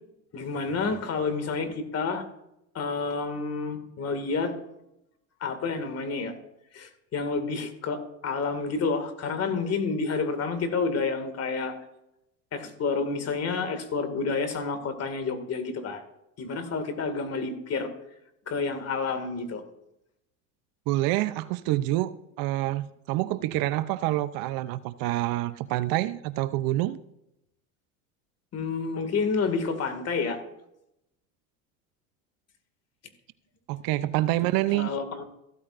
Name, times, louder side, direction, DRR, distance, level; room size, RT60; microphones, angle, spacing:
voice 1, 0.3-2.2 2.7-4.5 5.4-6.3 6.7-11.7 12.5-16.0 16.4-17.9 18.5-19.6 28.5-30.4 34.7-35.3, left 4 dB, 35° left, 8 dB, 2.2 m, -29 dB
voice 2, 20.9-27.0 33.7-34.9, right 16 dB, 50° right, 14 dB, 0.7 m, -27 dB
15.0 x 13.0 x 2.6 m, 0.84 s
hypercardioid pair, 95°, 43 cm